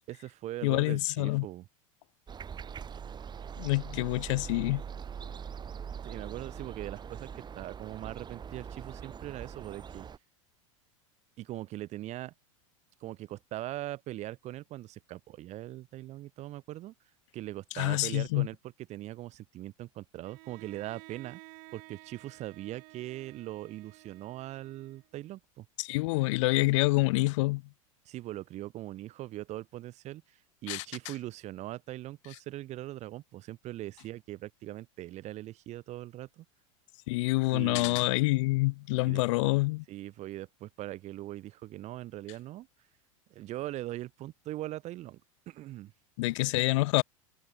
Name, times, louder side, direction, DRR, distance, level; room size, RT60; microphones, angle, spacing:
voice 1, 0.1-1.7 6.0-10.1 11.4-12.3 13.0-16.9 17.3-18.6 18.9-21.4 21.7-25.7 28.0-36.4 37.5-38.1 39.1-39.2 39.9-42.7 43.3-45.2 45.5-45.9, right 15 dB, 40° right, 1.1 m, -41 dB
voice 2, 0.6-1.5 3.6-4.8 17.8-18.5 25.8-27.6 30.7-30.8 37.1-39.8 46.2-47.0, left 22 dB, 60° left, 0.6 m, -27 dB
sound 1, 2.3-10.2, right 7 dB, 25° right, 2.5 m, -42 dB
Bowed string instrument, 20.2-25.3, right 38 dB, 55° right, 3.4 m, -53 dB
hypercardioid pair, 95°, 17 cm